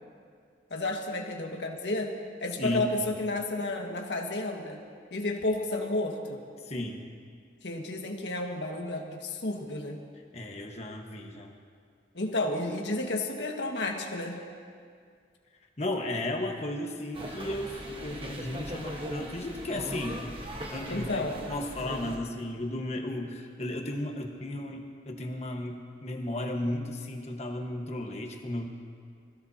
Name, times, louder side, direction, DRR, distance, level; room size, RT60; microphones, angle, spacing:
voice 1, 0.7-2.1 2.4-4.8 5.1-6.4 7.6-10.0 12.1-14.4 20.9-21.4, left 2 dB, 85° left, 1 dB, 1.7 m, -31 dB
voice 2, 2.6-3.1 6.6-7.0 10.3-11.6 15.8-21.2 21.5-28.7, left 1 dB, 40° left, 2 dB, 1.3 m, -34 dB
sound 1, 17.1-22.2, equal, 30° right, 1.3 m, -39 dB
25.0 x 16.0 x 2.8 m, 2.1 s
head